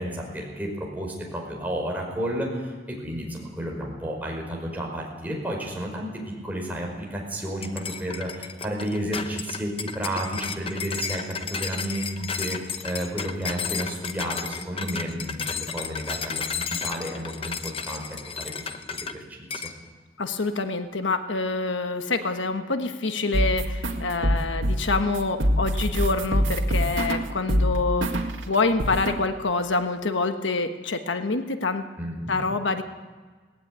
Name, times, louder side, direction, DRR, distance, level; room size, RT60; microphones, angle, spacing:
voice 1, 0.0-6.1 6.4-19.6 32.0-32.4, equal, 10° right, -1 dB, 5.1 m, -32 dB
sound 1, 7.6-19.2 19.5-19.8, left 6 dB, 30° left, 0.8 m, -33 dB
voice 2, 20.2-31.8 32.3-32.8, left 3 dB, 80° left, 7 dB, 1.3 m, -26 dB
sound 2, 23.3-28.4 28.8-29.2, equal, 90° right, 1.9 m, -24 dB
18.5 x 16.0 x 9.6 m, 1.4 s
head